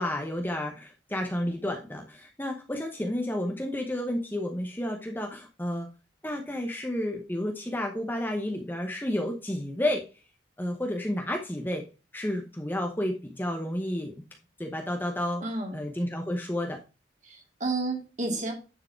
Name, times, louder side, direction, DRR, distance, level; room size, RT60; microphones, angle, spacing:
voice 1, 0.0-5.9 6.2-10.0 10.6-11.8 12.1-14.1 14.6-15.4 15.7-16.8, left 1 dB, 10° left, 3 dB, 0.9 m, -31 dB
voice 2, 15.4-15.8 17.2-18.5, right 2 dB, 40° right, 1 dB, 2.6 m, -31 dB
9.7 x 4.8 x 4.4 m, 0.31 s
head